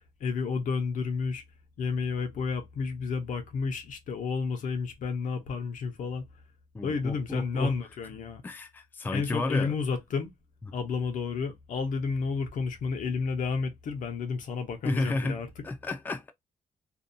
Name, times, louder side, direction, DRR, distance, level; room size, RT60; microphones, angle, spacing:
voice 1, 0.2-1.4 1.8-6.2 6.8-8.4 9.1-10.3 10.7-15.5, left 5 dB, 75° left, 0.7 m, -31 dB
voice 2, 6.7-7.7 8.4-9.8 14.8-16.3, left 2 dB, 15° left, 0.3 m, -31 dB
2.6 x 2.2 x 2.5 m
wide cardioid pair, 155°, 13 cm